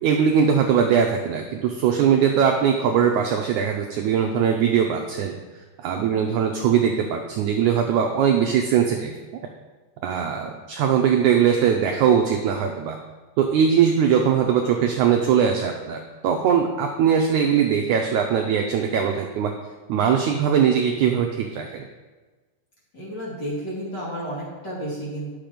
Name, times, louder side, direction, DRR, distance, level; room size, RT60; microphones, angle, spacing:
voice 1, 0.0-5.3 5.8-9.1 10.0-13.0 13.4-19.5 19.9-21.8, right 7 dB, 75° right, 2 dB, 1.8 m, -21 dB
voice 2, 22.9-25.3, right 1 dB, 30° left, -6 dB, 2.6 m, -31 dB
10.5 x 6.8 x 5.1 m, 1.3 s
omnidirectional pair, 4.1 m